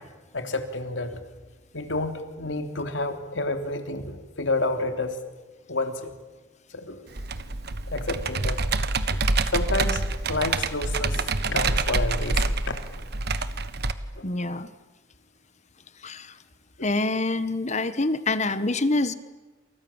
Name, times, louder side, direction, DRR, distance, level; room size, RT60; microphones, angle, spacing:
voice 1, 0.3-1.3 1.7-5.2 5.7-6.1 6.7-7.0 7.9-8.6 9.1-9.2 9.5-12.8 14.2-14.3 16.8-16.9, left 2 dB, 75° left, 7 dB, 3.2 m, -30 dB
Computer keyboard, 7.2-13.9, right 3 dB, 55° right, 1.4 m, -26 dB
voice 2, 14.2-14.7 16.0-16.3 16.8-19.1, left 2 dB, 40° left, 13 dB, 1.4 m, -26 dB
29.5 x 27.5 x 7.3 m, 1.2 s
head